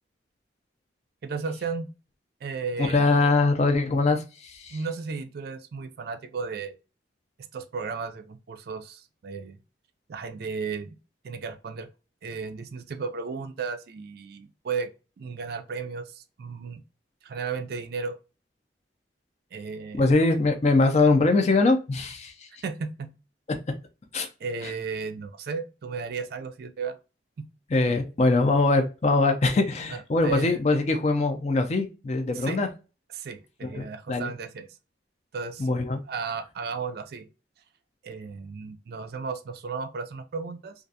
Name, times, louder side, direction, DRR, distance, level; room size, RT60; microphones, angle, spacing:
voice 1, 1.2-1.9 2.4-3.2 4.7-6.8 7.4-9.6 10.1-10.9 11.2-11.9 12.2-14.9 15.2-16.8 17.2-18.2 19.5-20.1 22.6-23.1 24.4-27.0 27.4-27.5 27.9-28.0 29.9-30.6 32.3-32.6 33.1-34.7 35.3-35.7 36.1-37.3 38.0-40.7, right 5 dB, 55° right, 0.3 m, -34 dB
voice 2, 2.9-4.8 20.0-22.5 24.1-24.3 24.6-24.7 27.7-32.7 33.6-34.3 35.6-36.0, left 3 dB, 40° left, 0.4 m, -22 dB
2.4 x 2.2 x 2.6 m
head